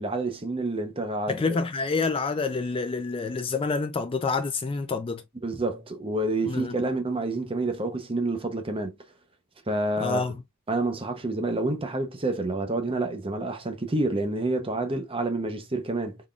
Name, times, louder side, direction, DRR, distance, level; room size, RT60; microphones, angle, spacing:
voice 1, 0.0-1.6 5.4-9.0 9.7-10.3 10.7-16.2, right 2 dB, 25° right, 0.7 m, -28 dB
voice 2, 1.3-5.2 6.4-6.7 10.0-10.3, left 4 dB, 25° left, 0.3 m, -28 dB
3.8 x 3.5 x 2.3 m
head